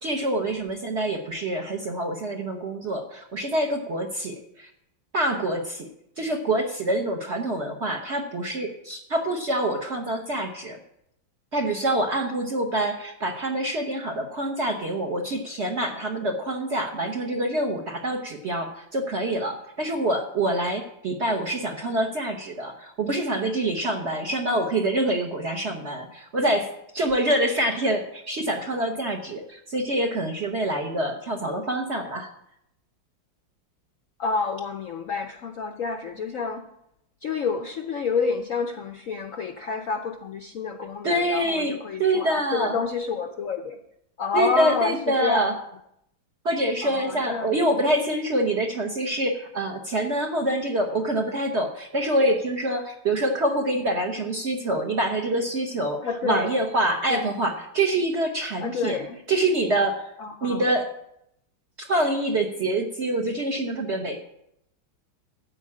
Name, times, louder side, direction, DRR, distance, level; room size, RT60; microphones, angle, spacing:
voice 1, 0.0-4.7 5.1-5.9 6.2-10.8 11.5-32.3 41.0-42.8 44.3-45.5 46.4-59.0 59.3-60.1 60.4-60.9 61.8-64.2, right 1 dB, 45° right, 2 dB, 0.9 m, -26 dB
voice 2, 34.2-36.7 37.2-43.8 44.2-45.5 46.8-47.6 56.0-56.5 57.1-57.3 58.6-59.2 60.2-60.6, left 5 dB, 65° left, 6 dB, 0.8 m, -29 dB
13.0 x 4.7 x 8.5 m, 0.78 s
omnidirectional pair, 2.2 m